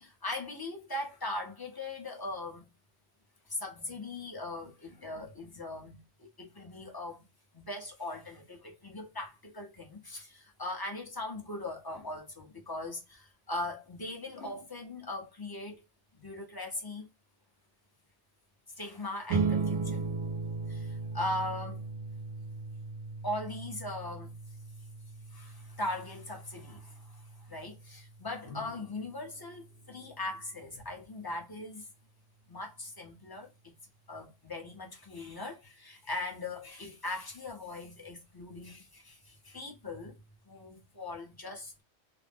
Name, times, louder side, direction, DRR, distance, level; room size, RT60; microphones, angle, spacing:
voice 1, 0.0-2.7 3.5-7.2 7.5-15.8 16.1-17.1 18.8-20.1 20.7-21.8 23.2-24.3 25.3-31.9 32.5-33.5 34.1-40.2 40.5-41.7, left 2 dB, 25° left, 0.6 m, -40 dB
sound 1, 19.3-30.1, right 4 dB, 85° right, 0.9 m, -37 dB
2.5 x 2.0 x 3.3 m
omnidirectional pair, 1.2 m